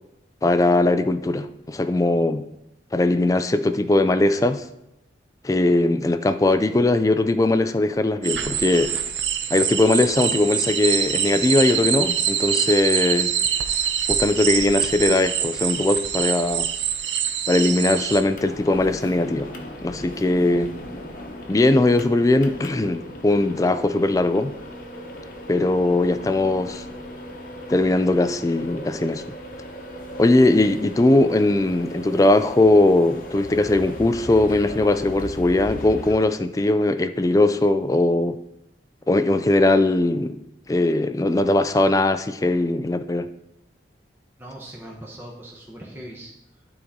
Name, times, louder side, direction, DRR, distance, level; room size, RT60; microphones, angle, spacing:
voice 1, 0.4-2.4 2.9-4.6 5.4-8.9 9.5-13.3 14.1-16.7 17.5-19.5 19.8-20.8 21.5-24.5 25.5-26.8 27.7-29.2 30.2-38.4 39.1-40.4 40.7-43.3, left 2 dB, 20° left, 0.3 m, -20 dB
sound 1, 8.2-18.2, right 8 dB, 80° right, 0.6 m, -24 dB
sound 2, 18.2-36.2, equal, 50° left, 0.9 m, -38 dB
voice 2, 44.4-46.7, right 1 dB, 10° right, 0.9 m, -41 dB
12.0 x 4.1 x 3.7 m
head